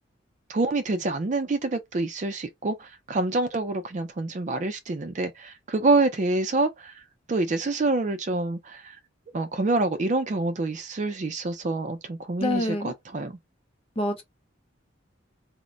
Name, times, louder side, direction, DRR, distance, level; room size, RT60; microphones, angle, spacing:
voice 1, 0.5-7.0 7.3-9.0 9.3-13.4, right 2 dB, 40° right, 0.4 m, -27 dB
voice 2, 12.4-12.9 14.0-14.2, left 1 dB, 30° left, 0.6 m, -26 dB
2.1 x 2.1 x 3.7 m
head